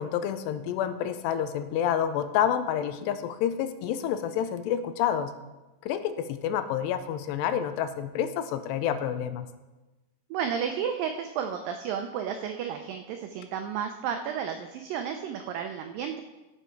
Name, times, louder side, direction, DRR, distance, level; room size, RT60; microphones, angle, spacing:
voice 1, 0.0-5.3 5.8-9.5, left 9 dB, 85° left, 11 dB, 2.8 m, -28 dB
voice 2, 10.3-16.2, right 7 dB, 90° right, 5 dB, 1.9 m, -32 dB
16.5 x 7.3 x 4.5 m, 1.1 s
omnidirectional pair, 4.9 m